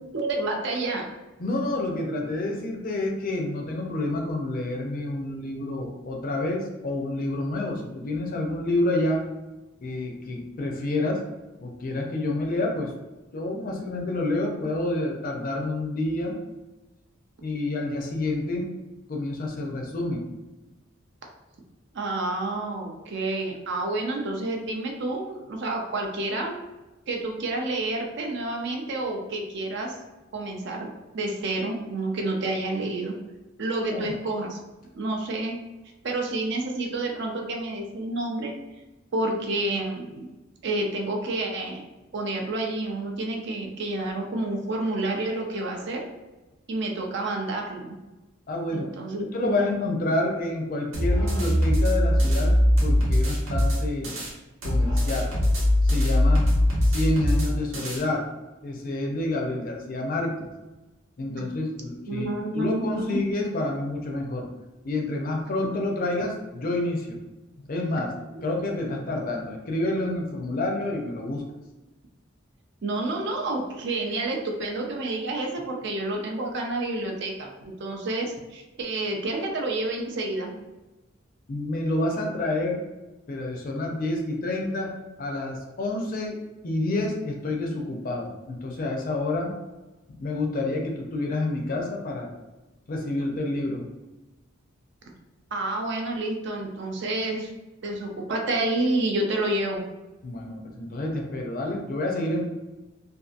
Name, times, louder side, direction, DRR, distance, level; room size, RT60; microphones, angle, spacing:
voice 1, 0.1-1.1 21.9-26.6 27.1-30.0 30.3-33.1 33.6-34.6 34.9-35.6 36.0-38.5 39.1-40.3 40.6-41.8 42.1-46.0 46.7-48.0 48.7-49.7 62.1-63.2 68.3-68.4 72.8-80.5 95.5-97.5 97.8-99.8, right 2 dB, 55° right, 1 dB, 0.5 m, -29 dB
voice 2, 1.4-9.2 9.8-11.2 11.6-12.9 13.3-16.4 17.4-18.7 19.1-20.2 33.9-34.1 48.5-48.9 49.3-54.1 54.6-55.3 55.8-56.5 56.9-58.2 58.6-60.5 61.2-62.3 62.5-64.5 64.8-67.2 67.6-68.1 68.4-71.4 81.5-82.8 83.3-84.9 85.2-86.4 86.6-89.5 90.1-92.3 92.9-93.8 100.2-102.4, left 2 dB, 45° left, 1 dB, 0.5 m, -28 dB
sound 1, 50.9-54.3 54.6-58.0, left 1 dB, 80° right, 0.9 m, -21 dB
2.6 x 2.4 x 2.4 m, 1.1 s
head